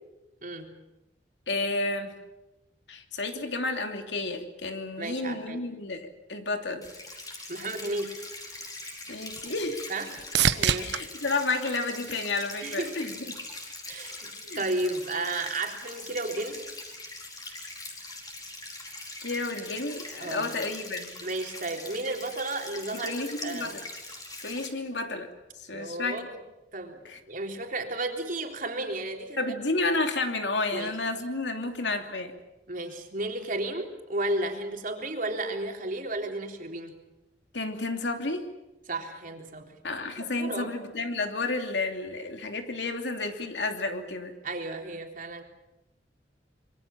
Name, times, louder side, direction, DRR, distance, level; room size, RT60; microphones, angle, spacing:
voice 1, 0.4-0.7 5.0-5.6 7.5-8.2 9.9-10.2 10.5-10.9 12.6-13.3 13.9-16.7 20.2-20.5 21.2-23.1 23.4-23.8 25.7-26.2 26.7-29.4 30.7-30.9 32.7-37.0 38.9-39.7 40.2-40.7 44.4-45.4, right 2 dB, 50° right, 3 dB, 3.7 m, -33 dB
voice 2, 1.5-2.2 2.9-6.9 9.1-9.9 10.8-13.4 14.4-14.6 19.2-21.2 22.9-23.8 24.4-25.3 25.6-26.2 27.0-27.2 29.4-32.3 37.5-38.5 39.8-44.3, left 2 dB, 85° left, 5 dB, 2.9 m, -31 dB
sound 1, 6.8-24.7, left 2 dB, 20° left, 4.7 m, -42 dB
sound 2, 8.6-12.8 13.3-14.0 21.8-21.9, right 7 dB, 75° right, 1.0 m, -31 dB
26.0 x 23.0 x 7.4 m, 1.0 s
head